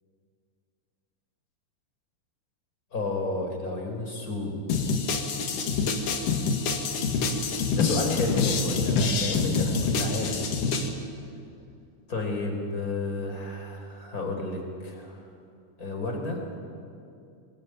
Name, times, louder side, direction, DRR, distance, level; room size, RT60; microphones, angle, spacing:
voice 1, 2.9-4.6 7.7-10.3 12.1-15.2 15.8-16.4, left 2 dB, 20° left, 2 dB, 4.1 m, -31 dB
sound 1, 4.7-10.9, left 4 dB, 55° left, 2.8 m, -26 dB
24.5 x 21.0 x 9.3 m, 2.4 s
omnidirectional pair, 5.4 m